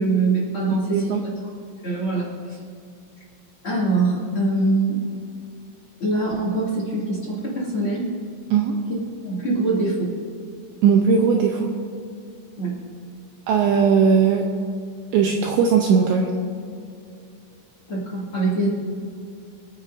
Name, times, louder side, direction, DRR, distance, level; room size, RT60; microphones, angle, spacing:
voice 1, 0.0-1.3 1.8-2.6 3.6-5.0 6.0-8.1 9.2-10.1 12.6-12.8 17.9-18.7, right 2 dB, 35° left, -5 dB, 2.3 m, -23 dB
voice 2, 10.8-11.8 13.5-14.5 15.1-16.3, right 6 dB, 80° right, 1 dB, 2.6 m, -18 dB
28.5 x 9.7 x 2.7 m, 2.4 s
omnidirectional pair, 6.0 m